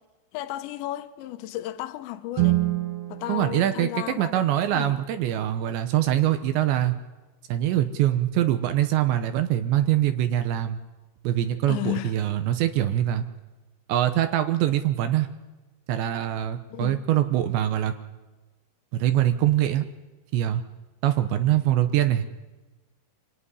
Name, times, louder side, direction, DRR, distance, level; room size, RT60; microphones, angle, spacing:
voice 1, 0.3-2.6 3.1-4.5 4.7-5.0 7.9-8.0 11.7-12.2 16.7-17.0, left 14 dB, 70° left, 3.1 m, -33 dB
Guitar, 2.3-4.9, right 17 dB, 45° right, 1.9 m, -28 dB
voice 2, 3.3-3.9 4.2-6.9 7.5-10.8 11.2-13.2 13.9-15.3 15.9-17.9 18.9-19.9 20.3-20.6 21.0-22.3, right 12 dB, 75° right, 2.8 m, -23 dB
28.5 x 19.5 x 9.9 m
omnidirectional pair, 5.9 m